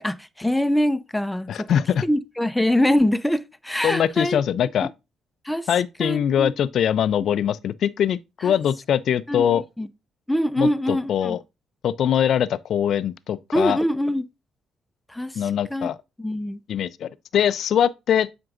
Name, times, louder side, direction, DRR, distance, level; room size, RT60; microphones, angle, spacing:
voice 1, 0.0-1.7 2.0-4.4 5.4-5.7 6.0-6.5 8.4-8.5 9.3-9.9 10.3-11.4 13.5-14.2 15.1-15.3 15.7-15.9 16.2-16.6, left 1 dB, 5° left, 0.5 m, -23 dB
voice 2, 1.5-2.0 3.8-4.9 5.7-9.6 10.6-11.4 11.8-13.8 15.4-16.0 16.7-18.3, left 9 dB, 65° left, 0.3 m, -22 dB
7.6 x 5.2 x 2.4 m
cardioid pair, 90°, 0 cm